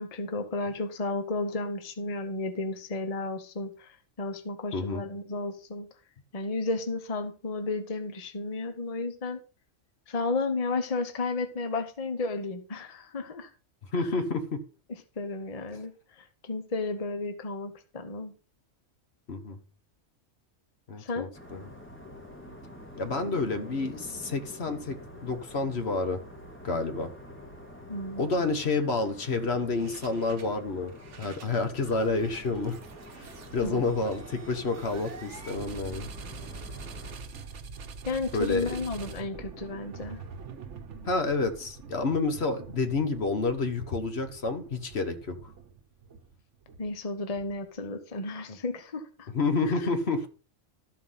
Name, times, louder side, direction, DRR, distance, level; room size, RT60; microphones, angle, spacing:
voice 1, 0.0-5.9 6.3-9.4 10.1-13.5 14.0-14.3 15.2-18.3 21.0-21.3 27.9-28.3 33.6-33.8 38.0-40.2 46.8-49.3 49.6-49.9, left 3 dB, 35° left, 1.0 m, -33 dB
voice 2, 4.7-5.0 13.9-14.6 19.3-19.6 20.9-21.7 23.0-26.2 26.6-27.1 28.2-32.8 33.1-36.1 38.3-38.7 41.1-45.4 49.3-50.3, left 3 dB, 60° left, 1.5 m, -29 dB
sound 1, 21.3-37.2, left 1 dB, 10° left, 1.7 m, -47 dB
sound 2, 29.8-30.6 30.9-47.8, right 5 dB, 70° right, 1.3 m, -45 dB
13.0 x 4.7 x 5.6 m
omnidirectional pair, 1.3 m